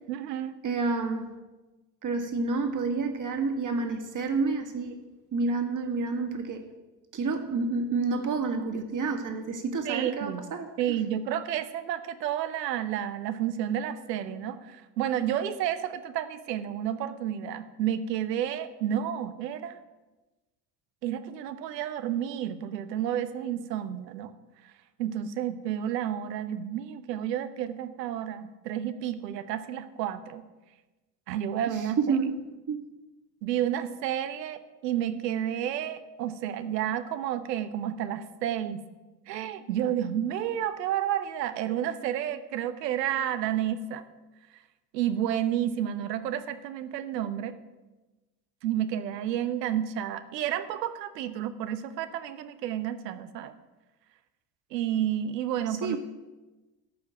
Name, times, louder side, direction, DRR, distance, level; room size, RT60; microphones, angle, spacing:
voice 1, 0.1-0.6 9.8-10.5 10.8-19.8 21.0-24.3 25.0-30.4 31.3-32.2 33.4-38.8 39.3-44.0 44.9-47.5 48.6-53.5 54.7-56.0, right 10 dB, 85° right, 12 dB, 1.1 m, -31 dB
voice 2, 0.6-1.3 2.0-5.0 5.3-6.6 7.1-11.0 31.7-32.4 32.7-32.8 55.7-56.0, right 4 dB, 40° right, 5 dB, 2.3 m, -29 dB
13.5 x 5.8 x 9.2 m, 1.1 s
hypercardioid pair, 75°, 48 cm